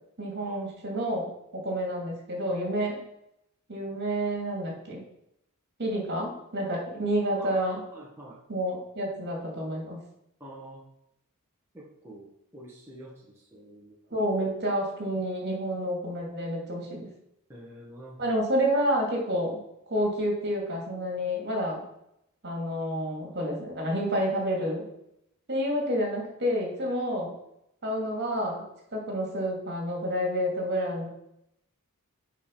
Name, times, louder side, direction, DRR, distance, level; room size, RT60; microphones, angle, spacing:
voice 1, 0.2-3.0 3.7-5.1 5.8-7.8 8.5-10.0 14.1-17.1 18.2-19.6 19.9-21.8 22.4-24.9 25.5-27.3 27.8-28.6 28.9-31.1, equal, 50° right, 0 dB, 2.6 m, -29 dB
voice 2, 7.4-8.4 10.4-10.8 11.7-14.2 17.5-18.4, right 1 dB, 10° right, -6 dB, 1.6 m, -47 dB
8.5 x 5.1 x 5.4 m, 0.80 s
head